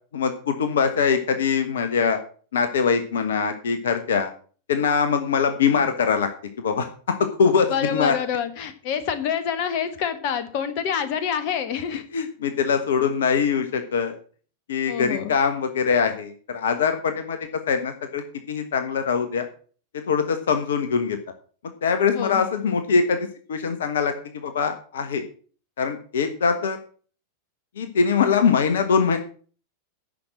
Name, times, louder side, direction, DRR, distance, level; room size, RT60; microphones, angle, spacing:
voice 1, 0.1-2.2 2.5-4.3 4.7-6.3 6.6-8.1 12.1-14.2 14.7-17.4 17.7-19.5 20.1-21.2 21.8-25.2 25.8-26.8 27.8-29.2, left 6 dB, 60° left, 8 dB, 1.3 m, -23 dB
voice 2, 7.7-12.0 14.9-15.3 22.1-22.4, left 8 dB, 45° left, 11 dB, 1.6 m, -27 dB
10.0 x 6.3 x 7.6 m, 0.42 s
figure-of-eight pair, 90°, 0 cm